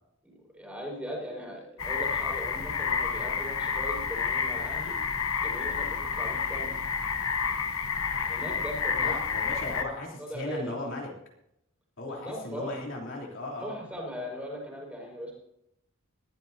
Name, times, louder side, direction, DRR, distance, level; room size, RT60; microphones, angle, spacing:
voice 1, 0.2-5.0 5.4-6.8 8.2-9.2 9.7-9.8 10.2-11.0 12.1-12.7 13.6-15.3, equal, 5° right, -2 dB, 5.5 m, -39 dB
sound 1, 1.8-9.8, left 6 dB, 80° left, 1.1 m, -30 dB
voice 2, 9.0-11.1 12.0-13.7, left 2 dB, 65° left, -2 dB, 3.5 m, -37 dB
21.0 x 13.5 x 2.8 m, 0.81 s
head